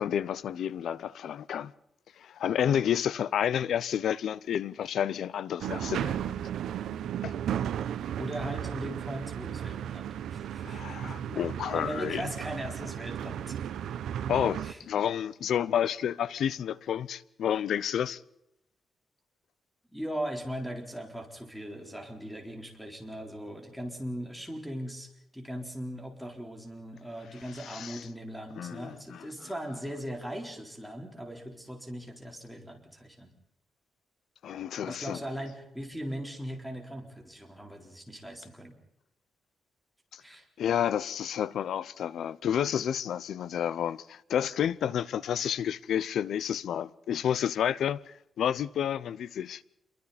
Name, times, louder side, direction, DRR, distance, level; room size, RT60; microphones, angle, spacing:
voice 1, 0.0-1.7 2.2-6.3 7.2-7.3 10.6-12.3 14.3-18.2 27.6-28.0 28.6-29.3 34.4-35.2 40.1-40.2 40.6-49.6, left 9 dB, 75° left, 0.7 m, -30 dB
sound 1, 5.6-14.7, right 10 dB, 90° right, 0.8 m, -35 dB
voice 2, 8.2-11.5 11.7-13.6 14.6-14.8 19.9-25.1 25.3-33.3 34.8-38.8 40.2-40.5, equal, ahead, 4.0 m, -39 dB
28.0 x 23.0 x 4.3 m
cardioid pair, 135°, 0 cm